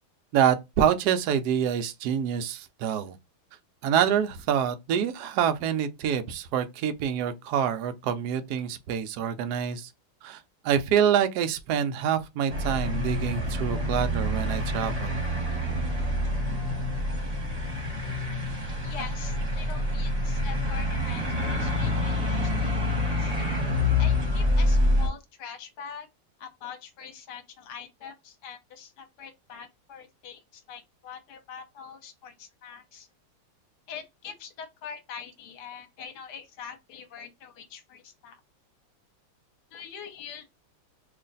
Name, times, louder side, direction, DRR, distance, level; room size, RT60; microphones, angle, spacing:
voice 1, 0.3-3.2 3.8-9.9 10.2-10.4 10.6-15.2, right 9 dB, 90° right, 0.8 m, -26 dB
sound 1, 12.5-25.1, left 1 dB, 30° right, 0.7 m, -27 dB
voice 2, 18.8-23.3 24.0-26.1 26.4-33.1 33.9-38.4 39.7-40.5, left 7 dB, 65° left, 1.2 m, -43 dB
3.1 x 2.5 x 3.9 m
omnidirectional pair, 2.3 m